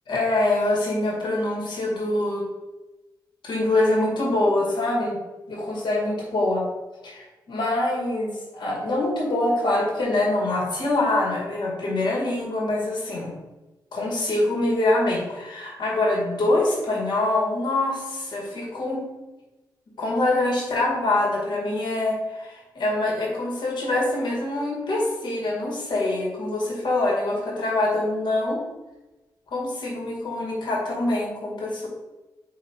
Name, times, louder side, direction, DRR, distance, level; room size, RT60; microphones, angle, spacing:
voice 1, 0.1-2.5 3.4-5.2 5.5-6.6 7.0-13.3 13.9-19.0 20.0-28.6 29.5-31.9, left 2 dB, 90° left, -2 dB, 2.1 m, -24 dB
8.6 x 3.0 x 4.4 m, 1.1 s
wide cardioid pair, 180°, 8 cm